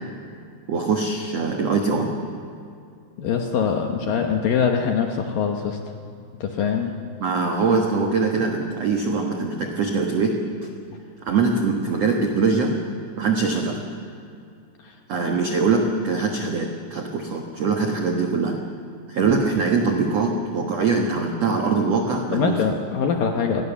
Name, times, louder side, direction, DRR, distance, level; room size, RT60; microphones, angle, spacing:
voice 1, 0.7-2.1 4.0-4.1 7.2-10.3 11.2-12.7 13.2-13.8 15.1-18.5 19.1-22.6, right 4 dB, 80° right, 2 dB, 1.4 m, -22 dB
voice 2, 3.2-5.8 6.4-6.9 14.8-14.9 22.3-23.6, left 6 dB, 70° left, 3 dB, 2.2 m, -23 dB
29.5 x 21.5 x 7.0 m, 2.4 s
omnidirectional pair, 5.5 m